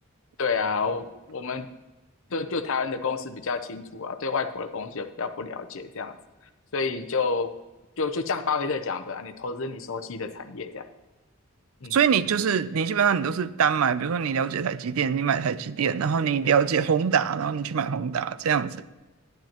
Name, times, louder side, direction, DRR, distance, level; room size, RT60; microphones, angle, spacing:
voice 1, 0.4-1.7 2.3-6.1 6.7-7.5 8.0-10.8 11.8-12.0, left 4 dB, 65° left, 0.7 m, -29 dB
voice 2, 11.9-18.9, right 7 dB, 75° right, 0.4 m, -24 dB
12.0 x 10.5 x 2.9 m
head